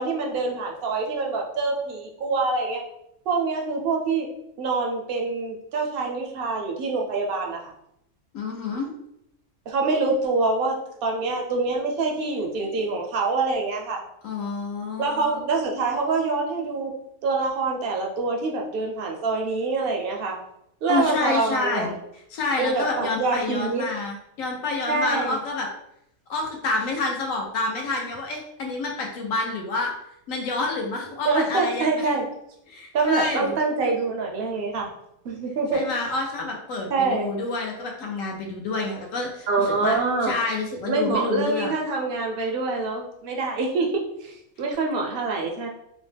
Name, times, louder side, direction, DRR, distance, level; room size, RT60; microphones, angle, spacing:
voice 1, 0.0-2.8 3.3-4.3 4.6-7.7 9.7-10.8 11.0-14.0 15.0-16.9 17.2-20.4 20.8-21.9 22.6-23.8 24.9-25.4 31.2-32.2 32.9-34.9 35.2-35.8 36.9-37.3 39.5-40.3 40.9-45.7, right 3 dB, 60° right, 1 dB, 0.6 m, -25 dB
voice 2, 8.3-8.9 14.2-15.4 20.9-21.9 22.3-25.7 26.3-29.9 30.3-32.1 32.7-33.6 35.7-40.0 40.2-41.7, left 3 dB, 75° left, 1 dB, 1.0 m, -28 dB
2.9 x 2.0 x 3.3 m, 0.77 s
omnidirectional pair, 1.5 m